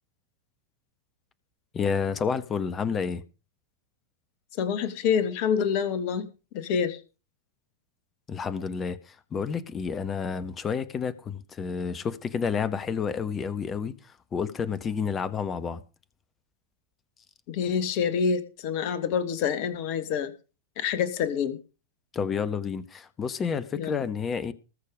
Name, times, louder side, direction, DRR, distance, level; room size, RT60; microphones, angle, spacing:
voice 1, 1.7-3.2 8.3-13.9 14.3-15.8 22.1-24.5, left 6 dB, 25° left, 1.2 m, -30 dB
voice 2, 4.6-6.3 6.5-7.0 17.5-20.3 20.8-21.6 23.8-24.1, left 7 dB, 45° left, 1.7 m, -27 dB
20.0 x 6.8 x 5.0 m
figure-of-eight pair, 90°, 0 cm